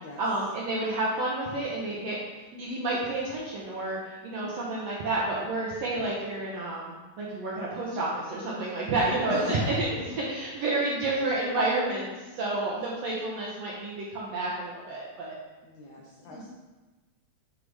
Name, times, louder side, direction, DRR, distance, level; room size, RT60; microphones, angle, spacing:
voice 1, 0.2-2.2 2.5-4.0 4.2-10.0 10.2-15.3 16.3-16.4, right 2 dB, 70° right, -6 dB, 1.6 m, -30 dB
voice 2, 9.3-9.9 15.6-16.5, left 3 dB, 85° left, -2 dB, 1.6 m, -39 dB
8.0 x 3.8 x 4.9 m, 1.2 s
omnidirectional pair, 4.2 m